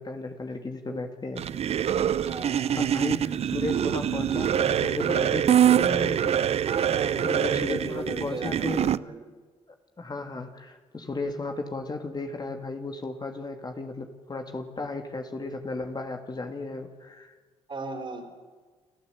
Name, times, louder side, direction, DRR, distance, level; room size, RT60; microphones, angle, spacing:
voice 1, 0.0-1.4 2.7-6.4 7.2-9.0 10.0-17.3, left 3 dB, 35° left, 5 dB, 2.7 m, -34 dB
sound 1, 1.4-9.0, right 9 dB, 60° right, 0.6 m, -25 dB
voice 2, 2.3-2.6 6.6-9.2 17.7-18.4, right 3 dB, 40° right, 6 dB, 4.7 m, -36 dB
29.0 x 13.0 x 8.6 m, 1.4 s
supercardioid pair, 60°, 12 cm